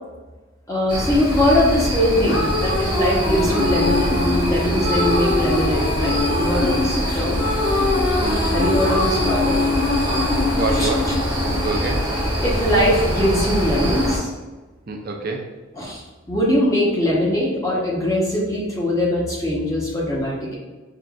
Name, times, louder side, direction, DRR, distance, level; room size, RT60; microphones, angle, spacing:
voice 1, 0.7-7.5 8.5-9.6 10.7-10.9 12.4-14.3 15.8-16.0 16.3-20.6, left 1 dB, 15° left, -5 dB, 0.8 m, -21 dB
sound 1, 0.9-14.2, equal, 25° right, 0.8 m, -24 dB
descending dual female vocal, 1.9-12.9, left 2 dB, 75° left, 1.0 m, -23 dB
voice 2, 8.2-8.6 10.5-11.1 11.5-12.1 14.9-15.5, right 3 dB, 50° right, 1 dB, 0.5 m, -27 dB
5.5 x 2.5 x 2.3 m, 1.2 s
head